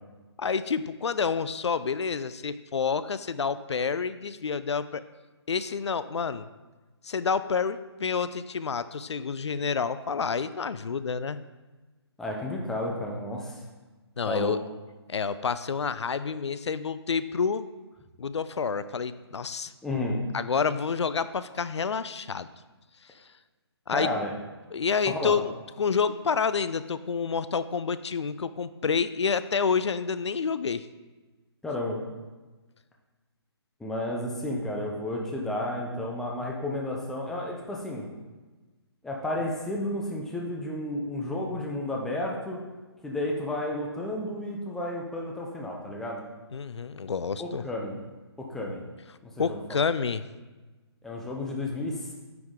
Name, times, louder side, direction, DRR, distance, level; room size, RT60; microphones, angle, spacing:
voice 1, 0.4-5.0 5.5-6.5 7.0-11.4 14.2-14.6 15.1-17.6 18.2-19.7 20.3-22.5 23.9-24.1 24.7-25.5 25.8-30.8 46.5-47.6 49.4-50.2, left 5 dB, 85° left, 14 dB, 0.4 m, -28 dB
voice 2, 12.2-13.6 14.3-14.5 19.8-20.2 23.9-24.3 25.1-25.3 31.6-32.0 33.8-38.1 39.0-42.6 43.0-46.2 47.4-48.0 48.4-48.8 49.2-49.6 51.0-52.1, left 1 dB, 5° left, -2 dB, 0.6 m, -32 dB
9.4 x 5.0 x 3.7 m, 1.2 s
hypercardioid pair, 155°, 14 cm